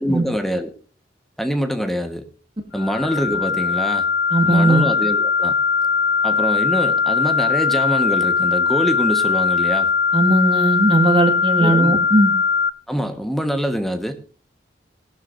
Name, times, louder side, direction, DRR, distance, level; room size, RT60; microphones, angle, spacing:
voice 1, 0.0-0.7 1.4-2.3 2.7-4.1 4.5-5.6 6.2-9.9 11.6-12.0 12.9-14.1, equal, ahead, 7 dB, 1.2 m, -24 dB
sound 1, 2.7-12.7, left 5 dB, 65° left, 0.8 m, -20 dB
voice 2, 4.3-4.8 10.1-12.3, right 2 dB, 30° right, 3 dB, 1.9 m, -17 dB
19.0 x 11.5 x 2.6 m, 0.38 s
head